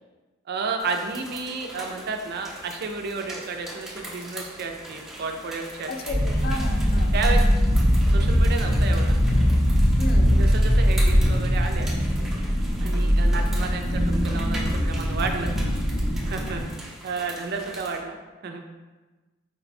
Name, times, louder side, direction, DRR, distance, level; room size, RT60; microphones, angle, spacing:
voice 1, 0.5-6.2 7.1-7.4 8.1-9.2 10.3-11.9 12.8-15.5 16.3-18.2 18.4-18.6, right 4 dB, 50° right, 4 dB, 0.4 m, -32 dB
sound 1, 0.8-18.0, right 1 dB, ahead, 0.7 m, -41 dB
voice 2, 5.9-7.1 10.0-10.4, left 2 dB, 50° left, 4 dB, 0.4 m, -33 dB
sound 2, 6.1-16.6, equal, 75° left, 1.3 m, -21 dB
4.2 x 2.2 x 4.1 m, 1.2 s
head